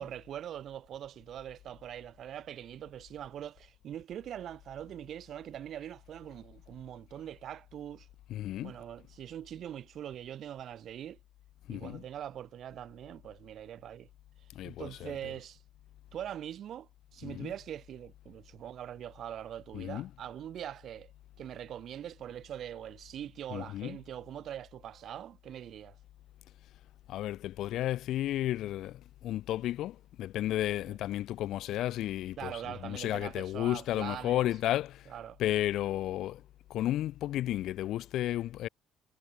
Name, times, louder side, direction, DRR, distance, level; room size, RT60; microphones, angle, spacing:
voice 1, 0.0-8.1 8.6-11.2 11.7-14.1 14.6-15.6 16.1-21.1 21.4-26.0 30.9-31.0 32.4-34.5 35.1-35.4, right 10 dB, 50° right, 3.5 m, -42 dB
voice 2, 8.3-8.7 11.7-12.0 14.5-15.2 17.2-17.5 19.7-20.1 23.5-24.0 27.1-35.1 35.4-36.4 36.7-38.7, left 13 dB, 65° left, 0.5 m, -33 dB
cardioid pair, 125°, 0 cm